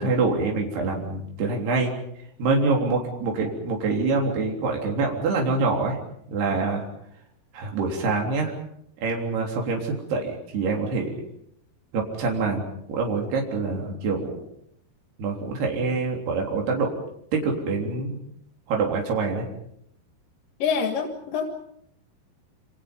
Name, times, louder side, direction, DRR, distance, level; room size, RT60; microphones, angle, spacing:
voice 1, 0.0-1.9 2.4-6.0 6.3-6.8 7.5-8.6 9.0-11.2 11.9-14.3 15.2-17.0 17.3-18.2 18.7-19.5, right 3 dB, 80° right, 0 dB, 5.6 m, -25 dB
voice 2, 20.6-21.5, left 6 dB, 60° left, 3 dB, 3.4 m, -25 dB
28.0 x 27.0 x 5.4 m, 0.71 s
omnidirectional pair, 4.6 m